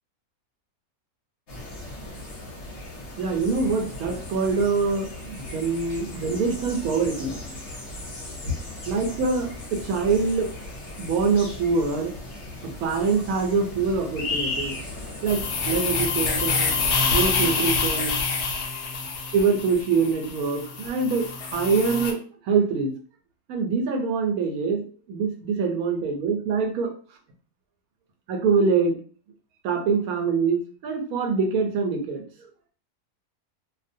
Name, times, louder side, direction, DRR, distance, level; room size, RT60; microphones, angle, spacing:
sound 1, 1.5-17.6, left 2 dB, 55° left, 1.0 m, -36 dB
voice 1, 3.2-7.3 8.9-10.5 11.0-12.1 12.6-14.8 15.2-16.7 17.1-18.1 19.3-22.9 23.5-26.9 28.3-29.0 29.6-32.2, right 4 dB, 80° right, 2 dB, 1.1 m, -24 dB
sound 2, 15.3-22.1, left 4 dB, 80° left, 1.1 m, -26 dB
2.6 x 2.1 x 2.5 m, 0.41 s
omnidirectional pair, 1.6 m